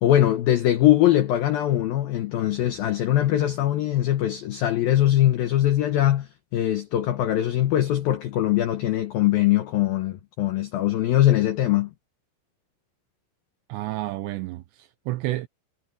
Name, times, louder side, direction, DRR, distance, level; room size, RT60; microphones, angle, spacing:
voice 1, 0.0-11.9, left 13 dB, 80° left, 2.1 m, -22 dB
voice 2, 13.7-15.5, right 17 dB, 80° right, 2.6 m, -30 dB
omnidirectional pair, 5.6 m